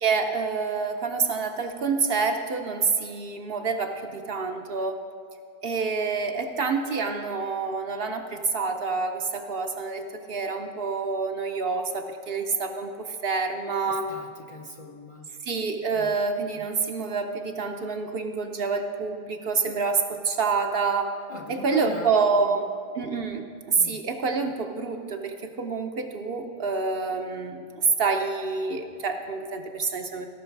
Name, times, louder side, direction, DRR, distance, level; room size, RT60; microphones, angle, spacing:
voice 1, 0.0-5.0 5.6-14.1 15.4-21.1 21.5-22.6 22.9-30.3, right 4 dB, 55° right, 5 dB, 0.8 m, -27 dB
voice 2, 13.9-15.3 15.9-16.1 21.3-22.6 23.7-24.0, left 3 dB, 35° left, 1 dB, 0.6 m, -39 dB
16.5 x 6.1 x 4.6 m, 2.3 s
omnidirectional pair, 1.2 m